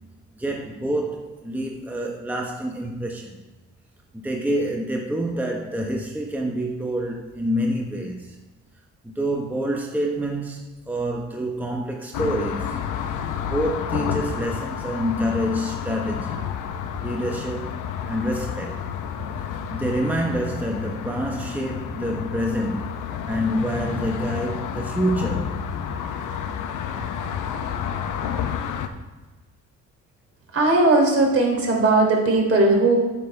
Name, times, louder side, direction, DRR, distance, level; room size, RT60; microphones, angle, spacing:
voice 1, 0.4-3.4 4.1-8.4 9.0-12.8 13.5-16.5 17.0-18.8 19.7-25.7, equal, 5° right, 1.0 m, -27 dB
sound 1, 12.1-28.9, left 8 dB, 85° left, 0.9 m, -30 dB
voice 2, 30.5-33.0, right 2 dB, 50° right, 3.2 m, -18 dB
8.4 x 6.8 x 5.3 m
cardioid pair, 90°, 30 cm